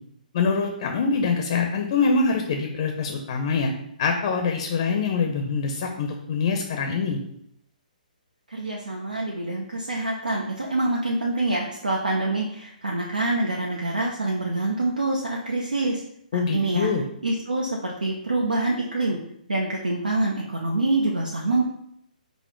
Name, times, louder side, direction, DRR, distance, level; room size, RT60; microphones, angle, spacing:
voice 1, 0.3-3.7 4.0-7.2 16.3-17.0, left 4 dB, 40° left, 3 dB, 0.6 m, -24 dB
voice 2, 8.5-16.0 16.3-16.9 17.2-19.2 19.5-21.6, right 2 dB, 75° right, -2 dB, 0.6 m, -26 dB
5.4 x 2.1 x 4.4 m, 0.74 s
figure-of-eight pair, 130°, 5 cm